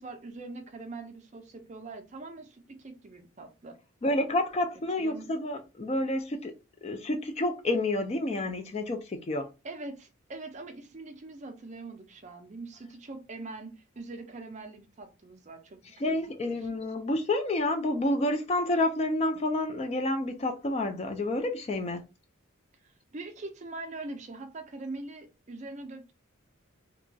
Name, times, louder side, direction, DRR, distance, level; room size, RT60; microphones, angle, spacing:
voice 1, 0.0-3.8 5.0-5.3 9.6-15.8 16.0-16.2 16.5-16.7 22.8-26.1, right 2 dB, 35° right, 0.4 m, -42 dB
voice 2, 4.0-6.5 6.8-9.5 16.0-22.0, left 1 dB, 30° left, 0.3 m, -29 dB
2.9 x 2.3 x 2.6 m
head